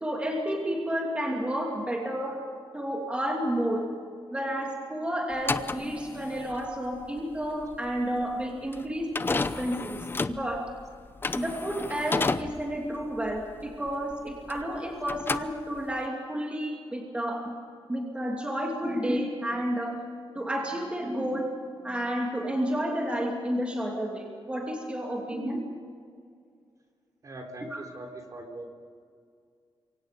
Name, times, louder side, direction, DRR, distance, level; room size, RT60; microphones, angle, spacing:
voice 1, 0.0-2.4 2.7-3.9 4.3-10.1 10.4-10.7 11.3-17.5 17.9-20.0 20.3-21.5 21.8-25.6 27.7-27.8, equal, 10° right, 0 dB, 2.8 m, -31 dB
sound 1, 5.3-14.8 15.0-16.1, left 3 dB, 25° left, 0.7 m, -32 dB
voice 2, 27.2-28.7, right 2 dB, 35° right, 3 dB, 3.6 m, -41 dB
27.0 x 24.0 x 5.3 m, 2.2 s
wide cardioid pair, 135°, 9 cm